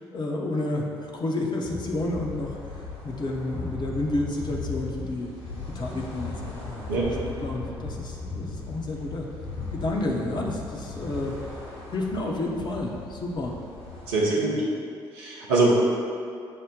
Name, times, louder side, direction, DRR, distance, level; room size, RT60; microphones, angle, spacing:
voice 1, 0.1-2.5 3.0-5.3 5.7-9.3 9.7-11.3 11.9-13.6 14.5-14.6, left 2 dB, 35° left, -1 dB, 0.7 m, -30 dB
sound 1, 1.6-14.1, left 3 dB, 65° left, 1.4 m, -37 dB
voice 2, 14.1-14.6 15.1-15.8, right 2 dB, 75° right, -5 dB, 0.7 m, -23 dB
6.2 x 2.1 x 3.7 m, 2.4 s
figure-of-eight pair, 45°, 13 cm